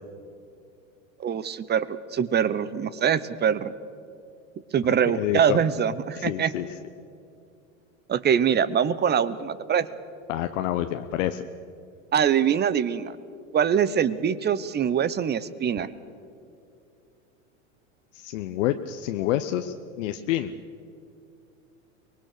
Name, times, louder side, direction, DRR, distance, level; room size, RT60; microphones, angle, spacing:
voice 1, 1.2-3.7 4.7-6.5 8.1-9.9 12.1-13.1 13.5-15.9, right 8 dB, 25° right, 16 dB, 0.9 m, -23 dB
voice 2, 4.9-5.6 6.2-6.7 10.3-11.5 18.1-20.6, left 13 dB, 65° left, 7 dB, 0.9 m, -28 dB
24.5 x 20.5 x 6.7 m, 2.5 s
hypercardioid pair, 100°, 40 cm